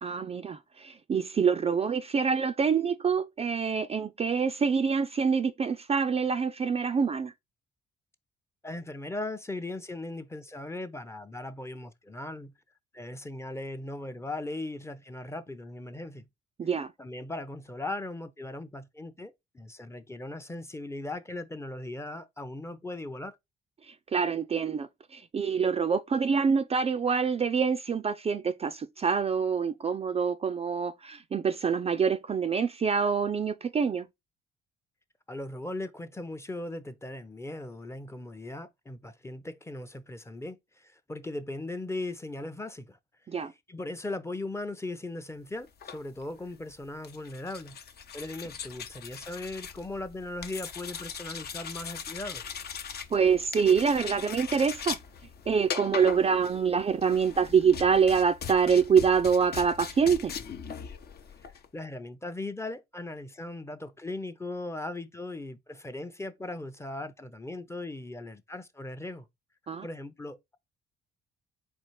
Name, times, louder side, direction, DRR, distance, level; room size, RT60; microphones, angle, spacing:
voice 1, 0.0-7.3 16.6-16.9 24.1-34.1 43.3-43.5 53.1-55.0 55.5-60.3 69.7-69.9, right 6 dB, 30° right, 0.4 m, -26 dB
voice 2, 8.6-12.5 12.9-16.2 17.0-23.4 35.3-43.0 43.4-47.8 48.1-52.4 61.7-69.3 69.8-70.6, left 2 dB, 15° left, 0.6 m, -38 dB
sound 1, 45.7-61.7, left 7 dB, 55° left, 0.7 m, -40 dB
4.4 x 2.4 x 4.6 m
cardioid pair, 90°, 20 cm